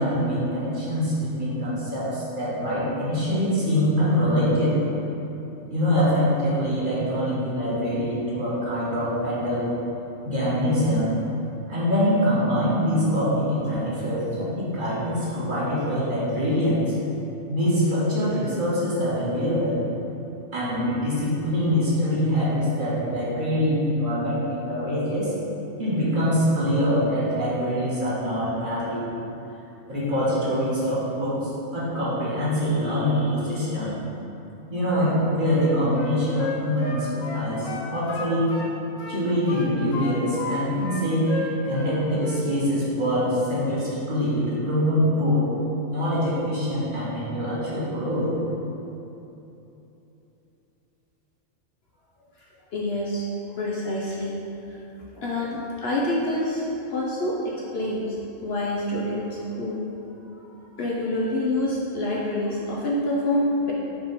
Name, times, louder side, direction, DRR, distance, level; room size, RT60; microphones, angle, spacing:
voice 1, 0.0-4.8 5.7-9.8 10.2-11.1 11.7-14.3 14.6-16.8 17.5-19.8 20.5-25.3 25.8-29.1 29.9-33.9 34.7-38.5 39.1-45.5 45.9-48.4, equal, 40° right, -9 dB, 1.4 m, -24 dB
Wind instrument woodwind instrument, 35.5-38.7 39.0-40.6 40.8-41.9 42.2-42.5, left 3 dB, 75° left, 1.1 m, -33 dB
voice 2, 52.3-54.8 55.1-59.9 60.3-63.7, left 1 dB, 60° left, -4 dB, 0.8 m, -27 dB
5.1 x 3.7 x 5.1 m, 3.0 s
omnidirectional pair, 1.4 m